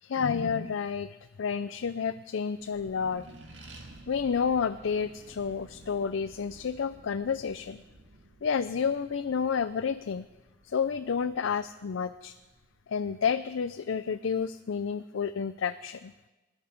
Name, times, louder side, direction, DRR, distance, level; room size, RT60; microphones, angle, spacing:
voice 1, 0.0-3.3 3.8-7.8 8.4-10.3 10.6-12.3 12.9-16.1, left 6 dB, 90° left, 11 dB, 0.4 m, -30 dB
Accelerating revving vroom, 2.5-13.5, right 2 dB, 75° right, 2.1 m, -53 dB
20.5 x 10.5 x 5.2 m, 1.1 s
head